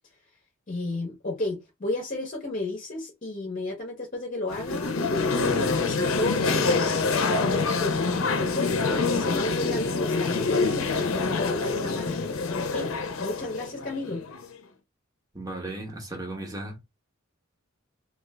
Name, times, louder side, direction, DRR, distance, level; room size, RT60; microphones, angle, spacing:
voice 1, 0.7-7.1 7.8-12.2 12.6-12.9 13.2-14.2, left 2 dB, 40° left, 0.7 m, -33 dB
sound 1, 4.5-14.5, left 4 dB, 75° left, 0.6 m, -26 dB
voice 2, 15.3-16.9, right 2 dB, 15° right, 0.8 m, -36 dB
2.4 x 2.3 x 3.3 m
head